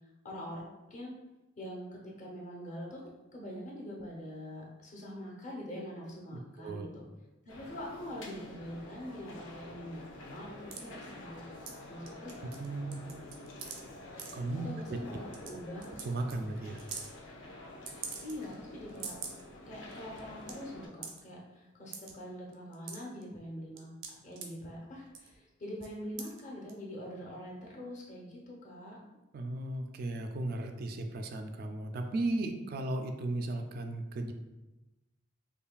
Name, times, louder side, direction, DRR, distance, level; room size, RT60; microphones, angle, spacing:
voice 1, 0.2-1.1 1.6-7.1 7.4-12.3 12.7-13.4 14.6-15.9 18.2-19.2 19.7-23.9 24.2-29.0, equal, 40° left, -3 dB, 0.8 m, -44 dB
sound 1, 7.5-20.9, left 1 dB, 80° left, 0.7 m, -49 dB
sound 2, 10.7-10.8 11.7-11.8 12.1-12.7 12.9-13.8 14.2-14.3 15.0-15.1 15.3-15.5 15.8-16.1 16.3-16.4 16.8-17.1 17.9-18.5 18.9-19.4 19.9-20.0 20.2-20.5 21.0-21.2 21.9-22.1 22.5-23.2 23.8-24.5 25.1-25.4 25.8-25.9 26.2-26.4 26.7-26.8, right 6 dB, 90° right, 0.6 m, -42 dB
voice 2, 12.6-13.0 14.3-15.0 16.0-16.8 29.3-34.3, right 2 dB, 50° right, 5 dB, 0.3 m, -35 dB
5.4 x 2.3 x 2.3 m, 1.1 s
head